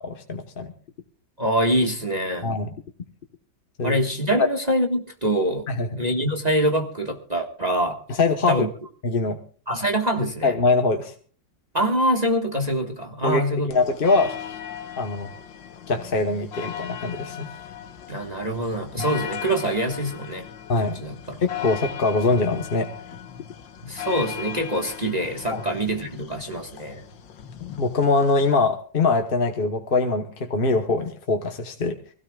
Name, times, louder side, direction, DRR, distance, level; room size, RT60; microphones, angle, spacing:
voice 1, 0.0-0.7 2.4-2.7 3.8-4.0 4.4-4.5 5.7-6.0 8.1-8.7 9.0-9.4 10.4-11.1 13.2-13.4 13.7-14.6 15.0-15.3 15.9-17.5 19.0-19.1 20.7-21.0 21.4-22.9 25.5-25.6 27.8-31.9, left 3 dB, 35° left, 4 dB, 1.0 m, -23 dB
voice 2, 1.4-2.5 3.8-5.7 6.0-8.0 8.5-8.7 9.7-10.5 11.7-13.7 18.1-20.4 20.9-21.4 23.8-27.0, right 1 dB, 25° right, 3 dB, 1.4 m, -24 dB
sound 1, 13.7-28.5, left 8 dB, 80° left, 1.8 m, -38 dB
24.5 x 16.5 x 2.3 m, 0.42 s
omnidirectional pair, 2.1 m